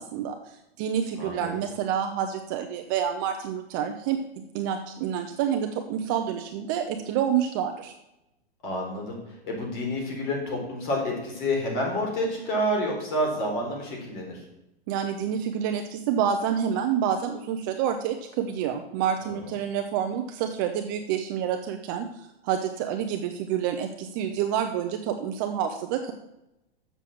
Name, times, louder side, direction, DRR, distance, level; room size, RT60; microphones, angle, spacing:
voice 1, 0.0-7.9 14.9-22.1 22.4-26.1, right 8 dB, 20° right, 5 dB, 0.4 m, -28 dB
voice 2, 1.2-1.6 8.6-9.2 9.4-14.4 19.3-19.4, equal, 50° left, 0 dB, 3.9 m, -29 dB
7.1 x 6.7 x 7.5 m, 0.90 s
supercardioid pair, 160°, 31 cm